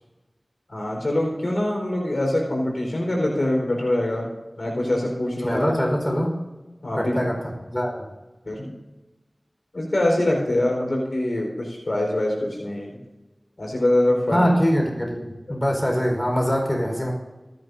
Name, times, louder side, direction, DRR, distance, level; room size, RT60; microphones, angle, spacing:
voice 1, 0.7-4.3 4.6-5.7 6.8-7.1 8.4-8.7 9.7-12.9 13.6-14.5, left 1 dB, 75° left, -1 dB, 4.7 m, -24 dB
voice 2, 5.4-6.3 6.9-7.4 7.7-8.1 14.3-17.1, equal, 20° left, 0 dB, 4.7 m, -23 dB
25.0 x 10.5 x 2.8 m, 1.2 s
wide cardioid pair, 40°, 0 cm